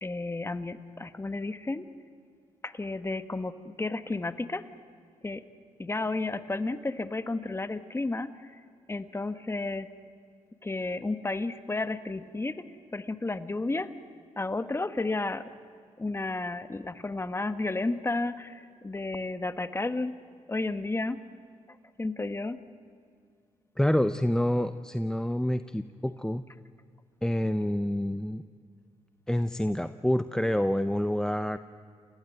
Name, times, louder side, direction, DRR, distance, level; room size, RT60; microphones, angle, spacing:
voice 1, 0.0-1.9 2.6-4.6 5.2-5.4 5.8-8.6 8.9-9.9 10.6-12.6 12.9-13.9 14.4-15.5 16.0-20.1 20.5-21.2 22.0-22.6, left 2 dB, 20° left, 11 dB, 1.3 m, -32 dB
voice 2, 23.8-26.4 27.2-28.4 29.3-31.6, left 1 dB, 5° left, 11 dB, 0.7 m, -27 dB
29.0 x 16.0 x 9.3 m, 2.3 s
cardioid pair, 75°, 12 cm